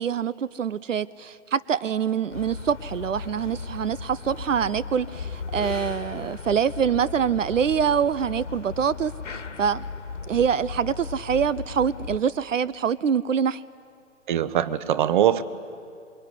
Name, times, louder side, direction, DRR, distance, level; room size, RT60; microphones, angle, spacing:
voice 1, 0.0-9.8 10.2-13.6, right 7 dB, 90° right, 20 dB, 0.7 m, -25 dB
sound 1, 2.3-12.2, left 5 dB, 80° left, 2.0 m, -36 dB
voice 2, 14.3-15.4, right 10 dB, 40° right, 15 dB, 1.1 m, -22 dB
26.0 x 22.5 x 9.9 m, 2.4 s
hypercardioid pair, 145°, 37 cm